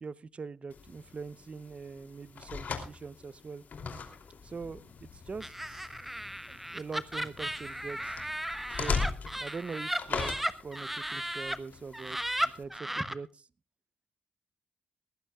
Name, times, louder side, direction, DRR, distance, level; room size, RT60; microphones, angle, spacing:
voice 1, 0.0-3.6 4.4-5.9 6.5-8.2 8.7-9.0 9.4-10.4 10.6-13.5, right 4 dB, 40° right, 19 dB, 0.7 m, -42 dB
sound 1, 0.7-12.6, left 5 dB, 60° left, 2.9 m, -40 dB
Laughter, 5.4-11.6 11.9-13.1, right 1 dB, 5° right, 1.1 m, -35 dB
20.5 x 15.0 x 2.4 m, 0.31 s
cardioid pair, 70°, 3 cm